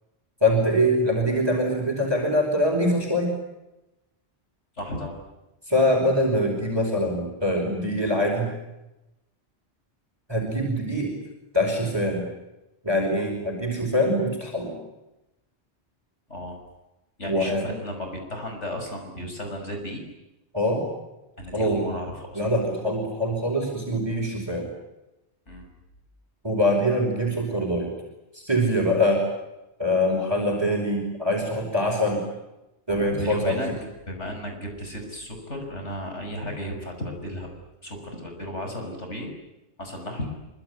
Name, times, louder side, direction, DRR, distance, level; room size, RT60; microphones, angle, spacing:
voice 1, 0.4-3.4 5.7-8.5 10.3-11.1 11.5-12.3 12.8-14.8 17.3-17.6 20.5-20.8 21.5-21.9 22.3-24.7 26.4-27.9 28.3-29.2 29.8-32.2 32.9-33.6, equal, 20° right, 1 dB, 5.3 m, -23 dB
voice 2, 4.8-5.2 16.3-16.6 17.2-20.0 21.4-22.4 25.5-25.6 32.9-33.7 34.1-37.5 37.8-39.3 39.8-40.3, equal, 80° left, 4 dB, 6.4 m, -34 dB
25.0 x 24.5 x 9.5 m, 0.96 s
omnidirectional pair, 1.2 m